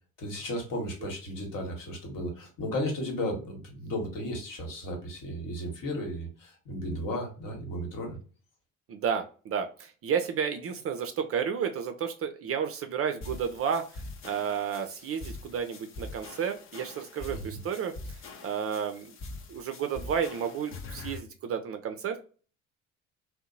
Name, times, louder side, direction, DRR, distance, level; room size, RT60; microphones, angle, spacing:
voice 1, 0.2-8.2 17.3-17.4, left 1 dB, 55° left, 1 dB, 1.2 m, -34 dB
voice 2, 8.9-19.1 19.5-22.2, right 7 dB, 35° right, 6 dB, 0.4 m, -32 dB
sound 1, 13.2-21.2, left 3 dB, 35° left, 0.6 m, -43 dB
2.7 x 2.0 x 2.5 m, 0.38 s
hypercardioid pair, 55°, 40 cm